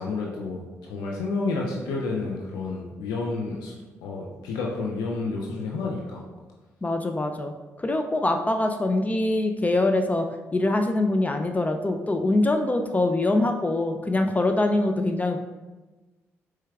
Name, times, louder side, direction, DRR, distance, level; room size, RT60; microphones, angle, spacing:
voice 1, 0.0-3.7 4.0-6.2, left 3 dB, 75° left, -1 dB, 0.5 m, -30 dB
voice 2, 6.8-7.5 7.8-10.3 10.5-15.4, left 2 dB, 20° left, 5 dB, 0.4 m, -24 dB
4.6 x 4.4 x 2.4 m, 1.2 s
hypercardioid pair, 45°, 7 cm